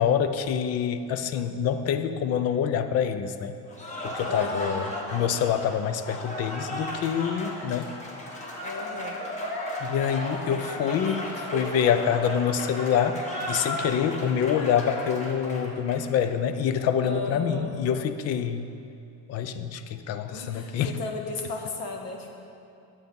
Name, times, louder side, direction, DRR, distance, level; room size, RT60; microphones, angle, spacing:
voice 1, 0.0-3.6 4.0-7.9 9.8-18.7 19.3-21.0, left 8 dB, 45° left, 10 dB, 0.6 m, -26 dB
Cheering / Applause, 3.7-16.3, left 1 dB, 20° left, 1.2 m, -35 dB
voice 2, 4.2-4.8 8.6-9.3 10.3-11.1 11.5-11.8 17.0-17.8 20.3-22.4, left 2 dB, 65° left, 1 dB, 1.6 m, -35 dB
10.5 x 8.4 x 5.3 m, 2.6 s
cardioid pair, 160°, 36 cm